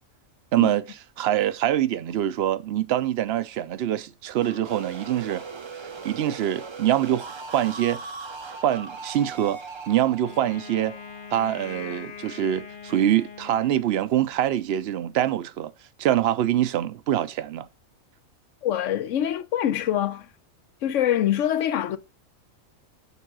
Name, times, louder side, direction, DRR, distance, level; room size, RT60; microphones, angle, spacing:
voice 1, 0.5-0.8 1.2-5.4 6.0-7.3 7.5-8.0 8.6-9.6 9.9-10.9 11.3-15.7 16.0-17.7, right 12 dB, 65° right, 0.7 m, -24 dB
sound 1, 4.4-12.1, right 4 dB, 35° right, 0.4 m, -39 dB
Wind instrument woodwind instrument, 10.2-14.4, left 7 dB, 50° left, 0.7 m, -42 dB
voice 2, 18.6-20.3 20.8-22.0, left 11 dB, 75° left, 1.0 m, -24 dB
7.1 x 3.6 x 6.0 m
omnidirectional pair, 1.4 m